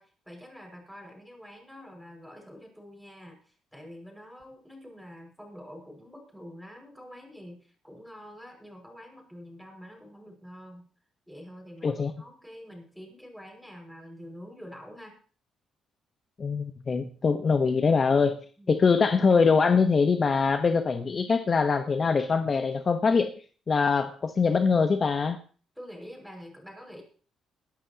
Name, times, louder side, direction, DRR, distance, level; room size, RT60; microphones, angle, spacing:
voice 1, 0.0-10.9 11.3-15.2 18.6-18.8 25.8-27.0, equal, ahead, 2 dB, 5.6 m, -46 dB
voice 2, 16.4-18.4 18.7-23.3 23.7-25.4, left 5 dB, 40° left, 7 dB, 1.0 m, -23 dB
22.0 x 11.0 x 2.9 m, 0.40 s
cardioid pair, 90°, 0 cm